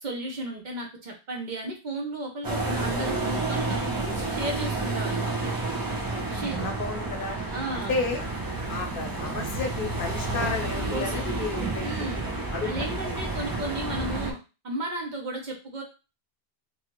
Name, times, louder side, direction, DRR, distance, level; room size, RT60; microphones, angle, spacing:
voice 1, 0.0-5.5 6.3-6.6 7.5-8.0 10.9-11.2 11.8-12.3 12.6-14.4 14.6-15.8, right 1 dB, 50° right, 1 dB, 0.8 m, -34 dB
sound 1, 2.4-14.3, right 2 dB, 35° right, 0.4 m, -30 dB
voice 2, 6.0-7.4 7.7-8.2 8.7-12.1 12.5-12.8, left 4 dB, 65° left, 4 dB, 0.8 m, -32 dB
2.7 x 2.3 x 2.9 m, 0.30 s
omnidirectional pair, 1.0 m